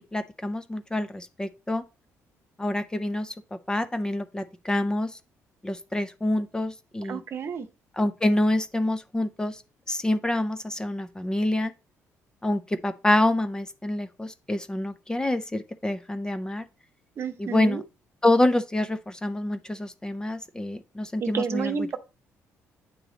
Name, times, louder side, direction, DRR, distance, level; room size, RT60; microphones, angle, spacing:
voice 1, 0.0-1.8 2.6-3.3 3.7-5.1 5.6-7.2 8.0-9.6 9.9-11.7 12.4-16.6 17.4-17.8 18.2-21.8, left 1 dB, 15° left, 0.6 m, -26 dB
voice 2, 7.1-7.7 17.2-17.8 21.2-22.0, right 6 dB, 50° right, 0.8 m, -30 dB
9.0 x 3.1 x 3.9 m
cardioid pair, 110°, 6 cm